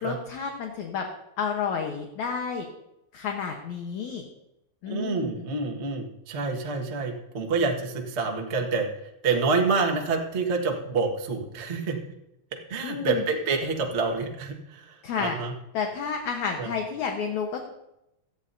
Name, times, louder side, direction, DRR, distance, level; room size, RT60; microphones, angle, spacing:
voice 1, 0.0-1.1 1.4-2.7 3.1-4.2 4.8-5.3 12.8-13.2 15.0-15.4 15.7-17.6, left 6 dB, 65° left, 2 dB, 2.2 m, -30 dB
voice 2, 4.8-8.9 9.2-12.0 12.7-15.5 16.6-16.7, right 4 dB, 75° right, 1 dB, 0.6 m, -27 dB
17.5 x 13.0 x 2.7 m, 0.85 s
omnidirectional pair, 4.2 m